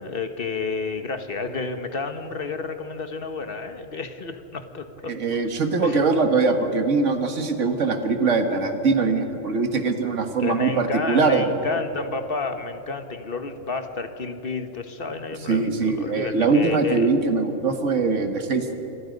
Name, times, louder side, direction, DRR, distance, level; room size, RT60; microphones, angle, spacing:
voice 1, 0.0-5.1 5.8-6.0 10.4-17.1, left 4 dB, 50° left, 7 dB, 1.5 m, -30 dB
voice 2, 5.1-11.7 15.5-18.7, right 4 dB, 75° right, 6 dB, 1.9 m, -22 dB
29.0 x 23.5 x 5.3 m, 3.0 s
omnidirectional pair, 1.3 m